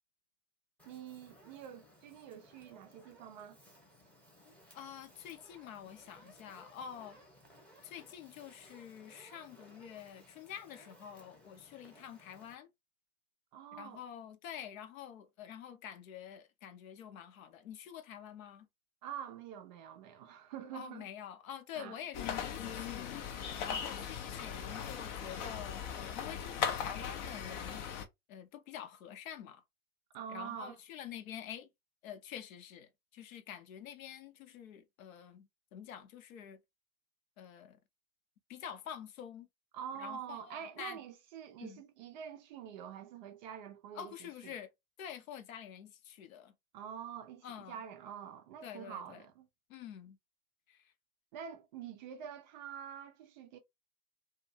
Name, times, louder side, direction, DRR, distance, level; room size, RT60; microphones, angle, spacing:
Fire, 0.8-12.5, equal, 5° left, 0.8 m, -60 dB
voice 1, 0.9-3.6 13.5-14.0 19.0-21.1 21.8-22.0 30.1-30.8 39.7-44.5 46.7-49.5 51.3-53.6, right 9 dB, 35° right, 0.4 m, -46 dB
voice 2, 4.7-7.2 7.8-12.7 13.7-18.7 20.7-27.8 28.3-29.6 30.3-31.7 32.0-36.6 37.4-37.8 38.5-39.5 40.0-41.0 41.6-41.8 44.0-44.7 45.0-46.5 47.4-47.8 48.6-49.2 49.7-50.2 50.7-50.8, left 9 dB, 65° left, 0.7 m, -47 dB
sound 1, 22.1-28.0, left 7 dB, 35° left, 0.4 m, -39 dB
2.5 x 2.3 x 2.6 m
hypercardioid pair, 110°, 45 cm